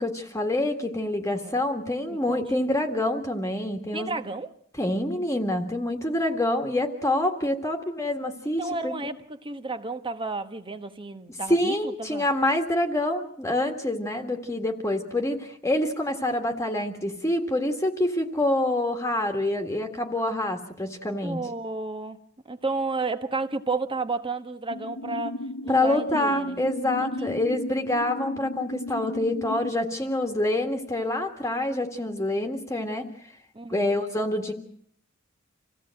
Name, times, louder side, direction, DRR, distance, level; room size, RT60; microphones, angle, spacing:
voice 1, 0.0-4.2 4.8-8.9 11.5-21.4 25.7-33.1 33.7-34.5, left 1 dB, 15° left, 1.8 m, -26 dB
voice 2, 2.1-2.4 3.9-4.5 8.6-12.3 21.2-22.2 22.4-25.4 25.6-26.6 27.0-27.3 33.5-34.0, right 3 dB, 25° right, 1.3 m, -32 dB
sound 1, 24.7-29.7, left 1 dB, 75° left, 0.9 m, -35 dB
27.0 x 16.5 x 7.7 m
head